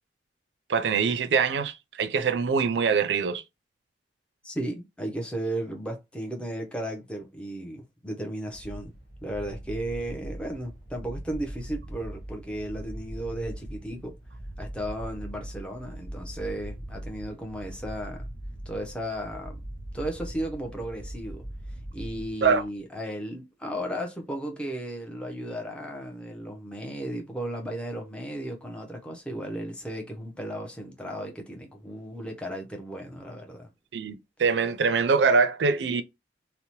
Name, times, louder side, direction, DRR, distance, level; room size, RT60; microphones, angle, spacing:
voice 1, 0.7-3.4 22.4-22.6 33.9-36.0, right 5 dB, 80° right, 0.4 m, -24 dB
voice 2, 4.4-8.9 9.2-14.1 14.6-18.3 18.7-19.6 19.9-21.4 21.9-33.7, right 1 dB, 5° left, 0.5 m, -35 dB
sound 1, 8.5-22.8, right 1 dB, 60° left, 1.4 m, -40 dB
2.8 x 2.0 x 2.9 m
head